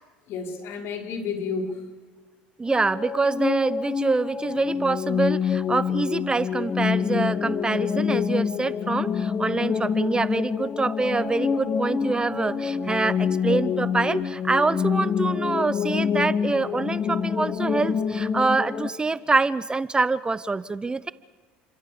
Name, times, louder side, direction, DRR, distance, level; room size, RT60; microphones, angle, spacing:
voice 1, 0.3-1.8, left 5 dB, 60° left, 4 dB, 5.1 m, -31 dB
voice 2, 2.6-21.1, right 3 dB, 20° right, 17 dB, 0.8 m, -25 dB
sound 1, 2.7-18.9, left 7 dB, 40° left, 1.9 m, -26 dB
30.0 x 24.5 x 7.0 m, 1.3 s
hypercardioid pair, 75°, 5 cm